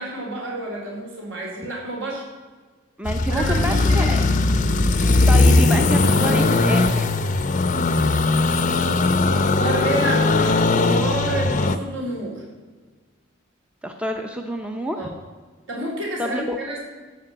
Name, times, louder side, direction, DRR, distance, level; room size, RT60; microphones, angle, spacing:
voice 1, 0.0-2.2 3.3-4.3 9.3-12.4 15.0-15.1 15.7-16.8, right 2 dB, 65° right, -3 dB, 4.3 m, -29 dB
voice 2, 3.0-4.2 5.0-7.0 13.8-15.1 16.2-16.6, equal, 5° right, 4 dB, 0.6 m, -28 dB
sound 1, 3.1-11.8, left 3 dB, 40° left, 0.6 m, -19 dB
13.5 x 5.6 x 7.8 m, 1.4 s
head